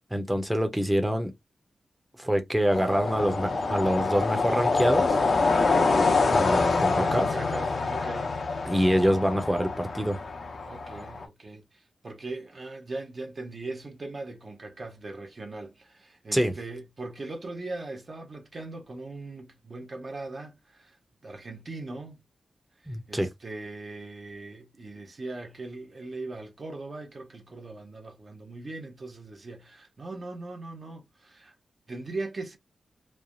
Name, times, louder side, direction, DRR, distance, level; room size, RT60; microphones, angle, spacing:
voice 1, 0.1-1.3 2.2-5.2 6.3-7.3 8.6-10.2 16.3-16.5 22.9-23.3, equal, 10° right, 0.7 m, -25 dB
sound 1, 2.7-11.2, left 3 dB, 65° left, 0.7 m, -26 dB
voice 2, 7.0-8.4 10.7-21.0 21.2-22.2 23.1-31.5 31.9-32.6, right 2 dB, 50° right, 0.8 m, -40 dB
3.2 x 2.1 x 2.5 m
cardioid pair, 65°, 0 cm